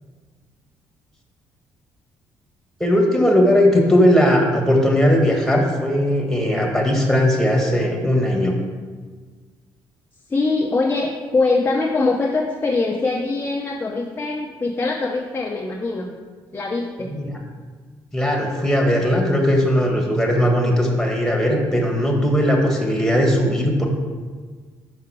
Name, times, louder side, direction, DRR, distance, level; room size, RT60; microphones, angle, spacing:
voice 1, 2.8-8.5 17.1-17.3 18.1-23.9, equal, 5° left, 1 dB, 1.5 m, -18 dB
voice 2, 10.3-16.1 16.5-17.1, left 3 dB, 20° left, 1 dB, 0.6 m, -22 dB
5.8 x 4.9 x 4.8 m, 1.5 s
supercardioid pair, 70°, 10 cm